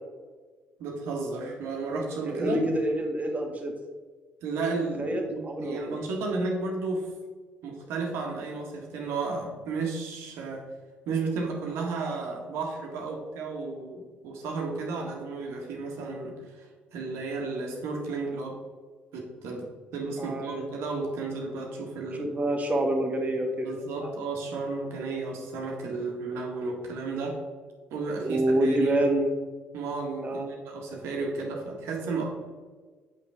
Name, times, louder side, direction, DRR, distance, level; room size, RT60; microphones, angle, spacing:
voice 1, 0.8-2.6 4.4-7.1 7.6-10.6 11.1-18.6 19.1-19.7 19.9-22.3 23.6-27.4 27.9-29.0 29.7-32.2, right 3 dB, 70° right, 1 dB, 1.7 m, -33 dB
voice 2, 2.2-3.7 5.0-6.0 20.2-20.7 22.2-24.1 28.2-29.4 30.2-30.5, right 1 dB, 30° right, 1 dB, 1.6 m, -27 dB
8.3 x 5.8 x 3.6 m, 1.4 s
hypercardioid pair, 50°, 5 cm